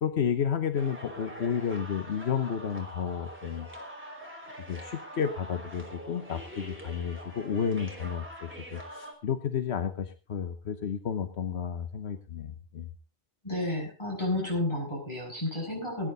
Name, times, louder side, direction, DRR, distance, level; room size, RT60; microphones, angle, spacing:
voice 1, 0.0-3.7 4.7-12.9, left 7 dB, 80° left, 9 dB, 1.3 m, -31 dB
sound 1, 0.8-9.1, equal, 10° right, 3.4 m, -44 dB
voice 2, 13.4-16.1, left 2 dB, 25° left, -1 dB, 7.8 m, -31 dB
18.5 x 10.5 x 3.9 m, 0.32 s
omnidirectional pair, 1.1 m